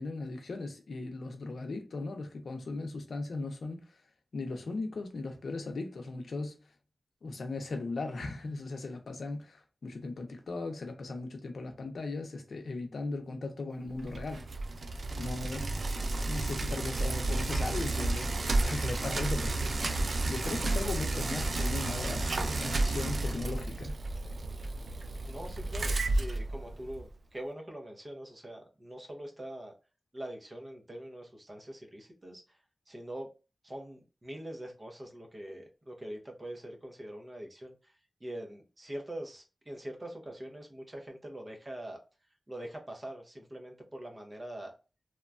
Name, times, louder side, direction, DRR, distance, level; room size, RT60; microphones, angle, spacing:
voice 1, 0.0-4.0 4.3-6.6 7.2-14.4 15.2-15.8 16.3-19.8 20.3-24.0, left 3 dB, 85° left, 0.6 m, -38 dB
Bicycle, 13.9-27.1, right 2 dB, 60° right, 0.3 m, -32 dB
voice 2, 25.3-29.7 30.1-32.6 32.9-33.3 33.6-42.0 42.5-44.7, right 1 dB, 30° right, 0.7 m, -43 dB
3.0 x 2.2 x 2.4 m
wide cardioid pair, 105°, 0 cm